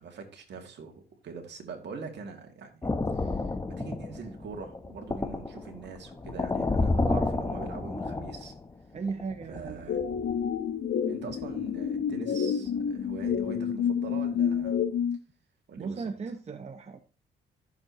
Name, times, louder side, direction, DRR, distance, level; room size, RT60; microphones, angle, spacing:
voice 1, 0.0-2.8 3.1-3.4 3.7-8.5 9.5-10.1 11.1-14.8 15.7-16.1, right 5 dB, 60° right, 3 dB, 2.5 m, -43 dB
sound 1, 2.8-8.7 9.1-10.5 11.3-11.6 12.0-12.1 12.7-12.9 13.3-13.4, left 3 dB, 15° left, 1.0 m, -31 dB
voice 2, 8.9-9.9 15.8-17.0, right 4 dB, 35° right, 7 dB, 0.8 m, -36 dB
sound 2, 9.9-15.2, left 7 dB, 60° left, 1.1 m, -29 dB
14.0 x 7.1 x 3.0 m, 0.37 s
cardioid pair, 90°, 20 cm